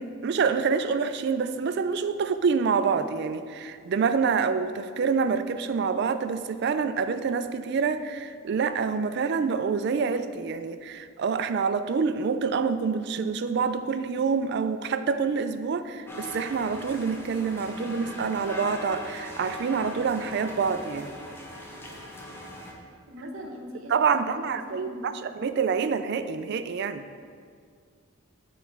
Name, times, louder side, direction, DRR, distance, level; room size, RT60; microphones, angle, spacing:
voice 1, 0.0-21.1 23.9-27.1, right 5 dB, 55° right, 11 dB, 0.3 m, -27 dB
sound 1, 16.1-22.7, left 1 dB, 10° left, 0.7 m, -40 dB
voice 2, 23.1-25.1, equal, 75° right, 2 dB, 0.9 m, -41 dB
8.0 x 4.1 x 4.6 m, 2.1 s
head